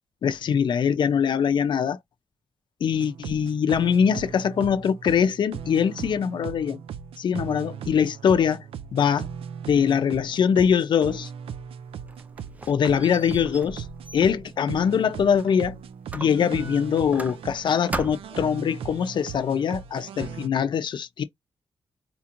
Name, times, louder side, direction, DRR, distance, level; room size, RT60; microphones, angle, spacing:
voice 1, 0.2-2.0 2.8-6.8 7.2-8.6 8.9-9.3 9.7-11.3 12.7-13.9 14.1-15.8 16.1-21.2, left 7 dB, 55° left, 0.5 m, -23 dB
sound 1, 2.9-20.5, right 7 dB, 80° right, 0.4 m, -38 dB
Squeak, 11.8-15.6 16.1-17.6 17.9-18.5, right 2 dB, 15° right, 0.4 m, -38 dB
4.3 x 2.9 x 2.5 m
wide cardioid pair, 170°, 9 cm